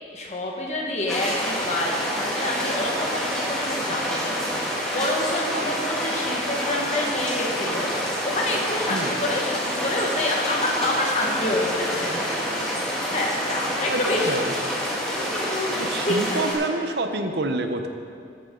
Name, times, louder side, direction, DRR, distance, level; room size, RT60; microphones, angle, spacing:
voice 1, 0.1-12.5 12.9-14.5 15.1-15.8 16.1-16.4, left 1 dB, 40° left, -1 dB, 1.5 m, -28 dB
sound 1, 1.1-16.5, equal, 5° left, 1.8 m, -27 dB
voice 2, 15.8-17.9, right 2 dB, 70° right, 6 dB, 0.8 m, -27 dB
13.0 x 8.7 x 3.8 m, 2.3 s
head